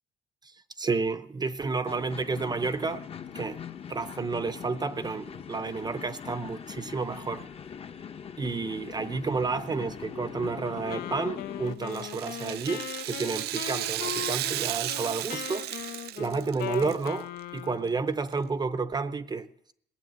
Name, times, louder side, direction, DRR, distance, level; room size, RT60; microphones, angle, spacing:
voice 1, 0.8-3.0 3.3-3.6 3.9-7.5 8.4-15.7 16.2-19.7, right 4 dB, 25° right, 0.7 m, -31 dB
sound 1, 1.9-11.8, left 7 dB, 35° left, 0.9 m, -42 dB
Wind instrument woodwind instrument, 10.9-18.0, left 13 dB, 65° left, 0.6 m, -39 dB
Rattle (instrument), 11.8-17.1 17.4-17.5 18.3-18.4, right 14 dB, 70° right, 0.6 m, -34 dB
18.5 x 7.2 x 9.2 m
cardioid pair, 110°, 17 cm